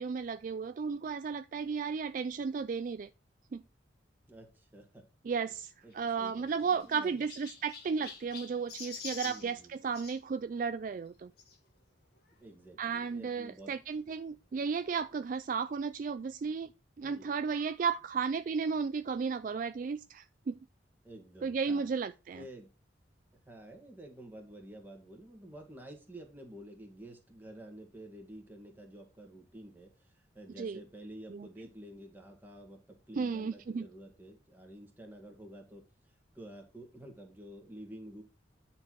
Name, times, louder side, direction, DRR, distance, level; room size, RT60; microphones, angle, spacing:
voice 1, 0.0-3.1 3.5-3.6 5.2-11.3 12.8-16.7 17.0-20.5 21.4-22.4 30.6-30.8 31.3-31.5 33.2-33.9, right 5 dB, 45° right, 0.3 m, -34 dB
voice 2, 4.3-5.0 5.8-7.3 9.2-9.8 12.4-13.7 17.0-17.3 21.0-21.9 22.3-22.7 23.5-30.1 30.4-35.8 36.3-38.2, right 1 dB, 10° right, 1.9 m, -50 dB
Chirp tweet, 5.9-10.2 11.4-11.6 12.3-12.4 12.6-12.7 13.9-14.0, left 5 dB, 55° left, 1.8 m, -47 dB
9.6 x 4.4 x 4.6 m
head